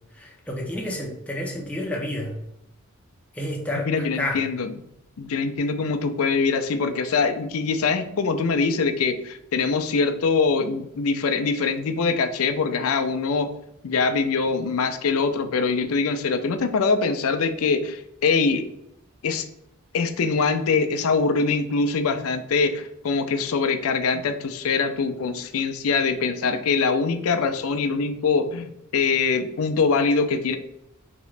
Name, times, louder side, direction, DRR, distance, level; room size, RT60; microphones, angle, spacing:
voice 1, 0.2-2.4 3.3-4.4, left 1 dB, 5° left, -1 dB, 0.6 m, -30 dB
voice 2, 3.7-4.7 5.2-13.5 13.8-18.7 19.2-19.5 19.9-30.6, left 4 dB, 70° left, 7 dB, 0.4 m, -23 dB
3.7 x 2.9 x 3.2 m, 0.77 s
head